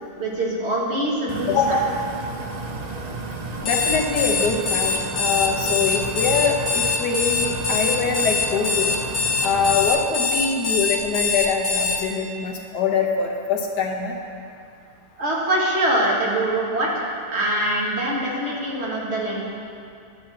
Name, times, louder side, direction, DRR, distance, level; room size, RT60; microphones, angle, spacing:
voice 1, 0.2-1.8 15.2-19.5, right 1 dB, 40° right, -4 dB, 1.8 m, -24 dB
sound 1, 1.3-9.9, right 3 dB, 65° right, 0.4 m, -33 dB
voice 2, 1.5-1.9 3.6-8.9 9.4-14.1, left 5 dB, 90° left, 1 dB, 1.6 m, -23 dB
Alarm, 3.6-12.0, left 5 dB, 70° left, 1.5 m, -23 dB
11.5 x 3.9 x 7.3 m, 2.5 s
omnidirectional pair, 1.7 m